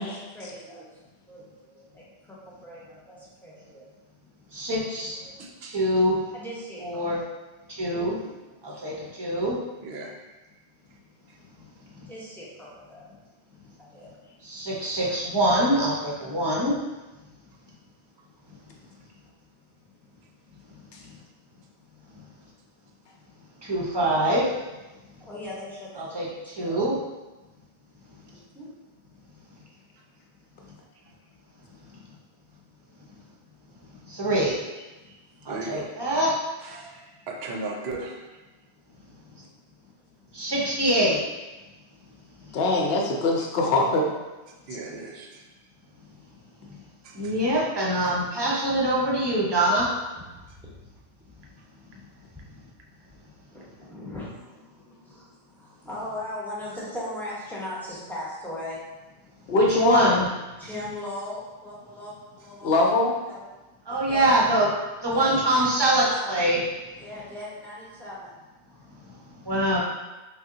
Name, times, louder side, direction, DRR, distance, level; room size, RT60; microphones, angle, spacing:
voice 1, 0.0-4.2 5.2-5.6 6.3-7.0 7.7-8.9 10.7-14.8 17.6-18.5 18.9-19.3 19.7-22.5 22.8-23.6 24.9-26.8 28.3-28.7 33.1-33.3 35.2-35.4 38.6-40.5 41.9-42.7 44.5-44.6 45.9-47.2 50.1-50.9 52.8-53.2 53.5-59.6 60.5-62.9 63.3-63.4 63.9-64.4 65.1-66.2 67.0-68.4 68.7-68.8, left 1 dB, ahead, -8 dB, 0.8 m, -42 dB
voice 2, 4.5-5.2 5.6-6.3 6.8-7.2 7.7-8.2 8.6-9.6 11.9-12.1 14.4-16.8 21.0-21.1 22.1-22.2 23.6-24.5 26.0-27.0 31.9-32.0 34.1-34.6 35.4-36.4 40.3-41.2 42.4-42.5 46.6-46.8 47.1-49.9 59.4-60.3 63.9-64.7 65.0-66.6 68.9-69.8, right 1 dB, 30° right, -5 dB, 0.6 m, -24 dB
voice 3, 5.4-5.8 9.8-10.4 35.1-35.2 35.4-35.9 36.6-38.4 44.7-45.4 47.0-47.3, right 3 dB, 70° right, 1 dB, 0.8 m, -37 dB
voice 4, 42.5-44.1 59.5-60.1 62.6-63.1, left 2 dB, 65° left, 0 dB, 0.8 m, -22 dB
3.6 x 2.2 x 3.7 m, 1.1 s
omnidirectional pair, 1.1 m